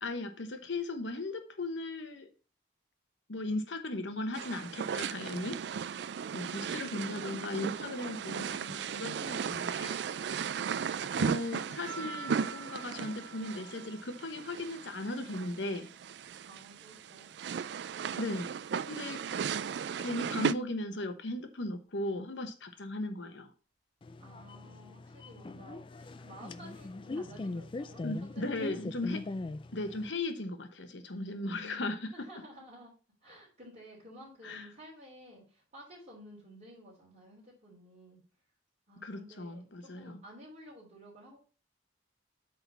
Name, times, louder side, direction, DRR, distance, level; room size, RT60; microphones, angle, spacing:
voice 1, 0.0-2.3 3.3-5.9 6.3-10.0 11.2-15.9 18.2-18.5 18.9-19.2 20.0-23.5 28.0-29.2 29.7-32.1 34.4-34.7 39.0-40.2, left 2 dB, 70° left, 6 dB, 1.1 m, -37 dB
sound 1, 4.3-20.5, right 7 dB, 60° right, 0.3 m, -36 dB
sound 2, 11.8-16.6 17.1-18.8 20.0-20.5, right 5 dB, 85° right, 1.7 m, -50 dB
voice 2, 16.4-17.3 24.2-28.8 31.6-32.9 33.2-38.2 38.9-41.4, equal, 40° right, -7 dB, 3.3 m, -53 dB
sound 3, 24.0-30.1, left 2 dB, 25° left, 0.3 m, -41 dB
8.3 x 3.9 x 5.6 m, 0.36 s
head